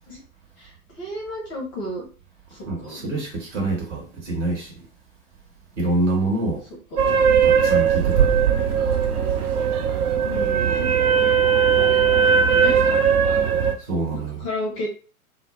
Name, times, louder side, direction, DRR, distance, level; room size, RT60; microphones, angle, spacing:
voice 1, 1.0-2.0 2.8-3.0 6.9-7.0 10.2-10.9 12.2-12.8 14.1-14.9, left 1 dB, 20° left, 0.5 m, -32 dB
voice 2, 2.7-4.7 5.8-6.6 7.4-8.3 13.9-14.4, right 2 dB, 55° right, 1.1 m, -26 dB
sound 1, 7.0-13.8, right 7 dB, 75° right, 0.6 m, -19 dB
2.1 x 2.0 x 2.9 m
figure-of-eight pair, 105°, 45 cm